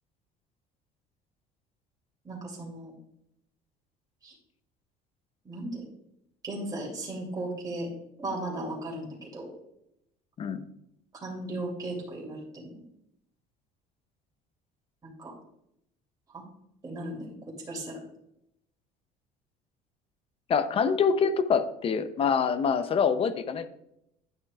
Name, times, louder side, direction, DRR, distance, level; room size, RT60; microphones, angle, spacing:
voice 1, 2.2-2.9 4.2-4.3 5.4-5.8 6.4-7.9 8.2-9.5 11.1-12.8 15.2-15.3 16.3-16.4 16.8-17.3 17.7-18.0, right 2 dB, 25° right, -3 dB, 2.6 m, -36 dB
voice 2, 20.5-23.7, left 6 dB, 35° left, 12 dB, 0.6 m, -25 dB
11.0 x 6.4 x 2.4 m, 0.80 s
cardioid pair, 120°, 16 cm